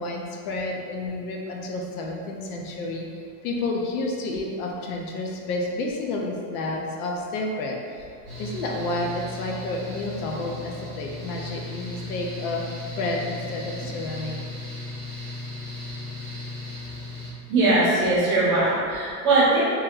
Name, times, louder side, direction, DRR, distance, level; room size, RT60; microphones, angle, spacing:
voice 1, 0.0-3.1 3.4-8.1 8.4-12.6 13.0-14.4, left 2 dB, 65° left, 0 dB, 0.7 m, -30 dB
Mechanical fan, 8.3-17.3, left 2 dB, 15° left, 0.3 m, -36 dB
voice 2, 17.5-19.6, right 2 dB, 25° right, -8 dB, 0.8 m, -20 dB
3.0 x 2.8 x 3.7 m, 2.3 s
supercardioid pair, 175°, 47 cm